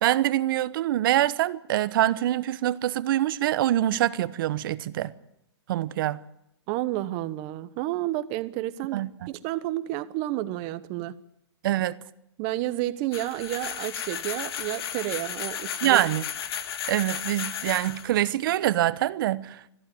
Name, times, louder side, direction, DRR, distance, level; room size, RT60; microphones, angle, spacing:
voice 1, 0.0-5.1 5.7-6.2 8.9-9.3 11.6-12.0 15.8-16.2 16.9-19.6, right 13 dB, 50° right, 1.0 m, -25 dB
voice 2, 6.7-11.1 12.4-16.0, right 15 dB, 35° right, 1.1 m, -31 dB
sound 1, 13.1-18.3, left 9 dB, 60° left, 2.0 m, -34 dB
21.0 x 14.5 x 9.2 m
hypercardioid pair, 145°, 15 cm